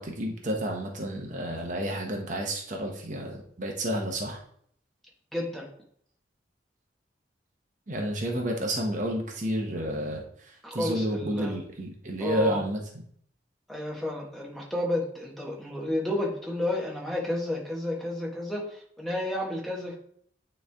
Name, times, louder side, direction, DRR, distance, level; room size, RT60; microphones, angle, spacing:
voice 1, 0.0-4.4 7.9-13.0, right 1 dB, 45° right, 1 dB, 0.9 m, -31 dB
voice 2, 5.3-5.7 10.6-11.6 12.2-12.6 13.7-19.9, left 1 dB, ahead, -3 dB, 1.4 m, -31 dB
9.0 x 3.3 x 3.5 m, 0.62 s
head